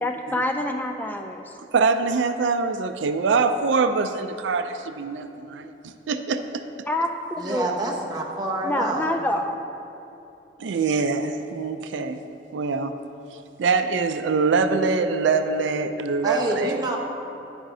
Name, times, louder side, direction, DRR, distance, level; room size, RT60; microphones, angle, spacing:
voice 1, 0.0-1.5 6.9-7.7 8.6-9.5, left 1 dB, 10° left, 4 dB, 0.3 m, -26 dB
voice 2, 1.7-6.6 10.6-12.2 12.5-12.9 13.6-17.0, right 4 dB, 80° right, 9 dB, 0.4 m, -24 dB
voice 3, 7.4-9.1 16.2-17.0, right 2 dB, 20° right, -1 dB, 0.9 m, -27 dB
10.0 x 8.8 x 2.7 m, 2.9 s
head